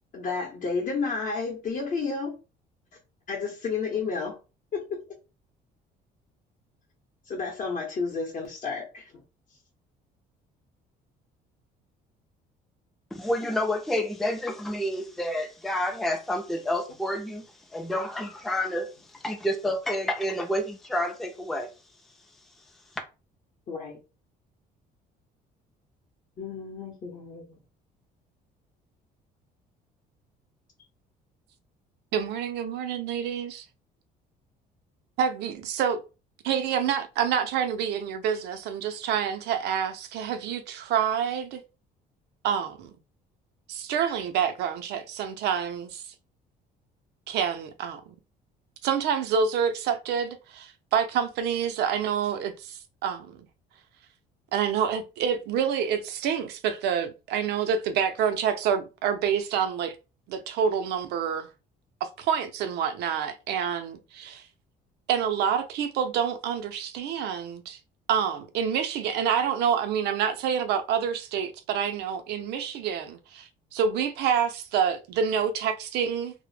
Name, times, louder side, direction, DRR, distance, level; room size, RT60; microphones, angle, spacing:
voice 1, 0.1-2.4 3.3-4.4 4.7-5.0 7.3-9.2 23.7-24.0 26.4-27.6, left 4 dB, 50° left, 0.7 m, -31 dB
voice 2, 13.1-17.4 17.7-21.7, left 1 dB, ahead, 0.4 m, -29 dB
voice 3, 32.1-33.6 35.2-36.0 36.4-41.6 42.4-42.9 43.7-46.0 47.3-48.0 48.8-53.4 54.5-60.0 60.3-61.5 62.0-64.5 65.1-67.8 68.1-76.3, right 7 dB, 75° right, 0.5 m, -27 dB
2.1 x 2.0 x 3.1 m
cardioid pair, 110°, 17 cm